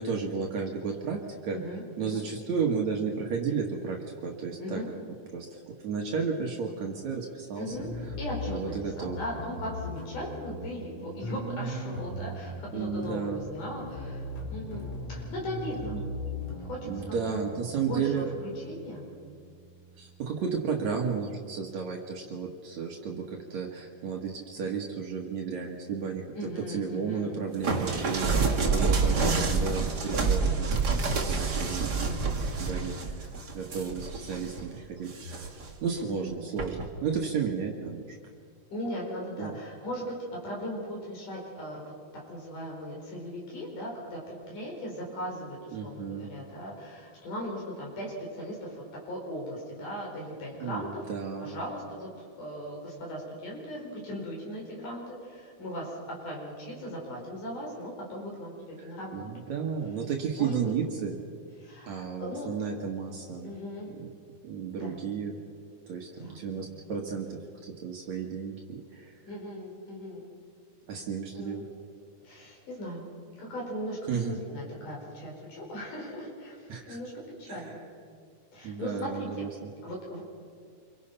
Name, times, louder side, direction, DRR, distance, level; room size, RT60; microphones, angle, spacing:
voice 1, 0.0-1.6 2.0-4.8 5.3-7.8 8.5-9.2 11.3-12.0 12.7-13.5 15.8-16.0 16.9-18.3 20.0-28.4 28.7-32.0 32.6-33.3 33.5-35.5 35.8-38.0 39.4-39.6 45.7-46.3 50.6-51.6 58.8-61.2 61.9-63.5 63.9-64.1 64.4-65.4 65.9-69.1 70.9-71.7 74.1-74.4 76.7-77.0 77.5-77.8 78.6-79.7, right 6 dB, 65° right, 0 dB, 2.9 m, -33 dB
voice 2, 1.5-2.3 4.6-4.9 7.6-7.9 8.2-16.0 16.6-19.1 26.3-27.4 28.3-28.5 28.9-29.0 32.0-32.3 34.3-34.4 36.0-36.5 38.7-41.9 42.3-51.0 51.4-59.4 60.4-60.7 61.6-62.5 63.4-63.9 64.7-65.0 66.2-66.4 69.3-70.3 71.3-71.6 72.2-73.0 73.3-77.8 78.5-79.5 79.8-80.2, equal, 80° left, -2 dB, 6.6 m, -38 dB
sound 1, 7.7-20.5, left 2 dB, 55° left, 4.3 m, -40 dB
sound 2, 27.6-34.6 35.1-35.7 36.6-36.9, right 4 dB, 35° right, 2.2 m, -28 dB
28.0 x 24.0 x 5.6 m, 2.1 s
omnidirectional pair, 3.6 m